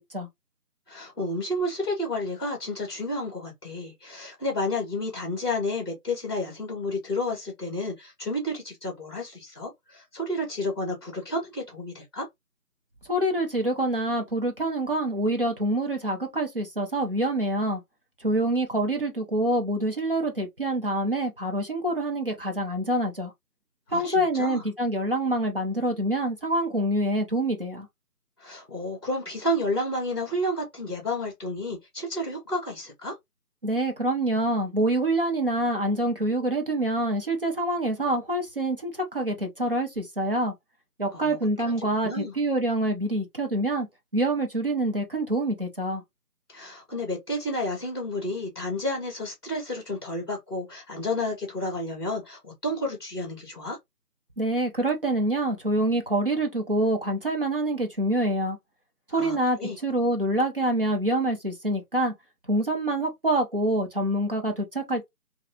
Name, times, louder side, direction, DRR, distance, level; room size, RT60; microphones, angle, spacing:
voice 1, 0.9-12.3 23.9-24.6 28.4-33.1 41.1-41.4 41.6-42.3 46.5-53.8 59.1-59.8, left 1 dB, 15° left, 1.5 m, -31 dB
voice 2, 13.1-17.8 18.2-23.3 23.9-27.9 33.6-40.5 41.0-43.9 44.1-46.0 54.4-58.6 59.1-62.1 62.5-65.1, right 1 dB, 35° right, 0.7 m, -26 dB
3.4 x 2.4 x 2.8 m
figure-of-eight pair, 170°, 47 cm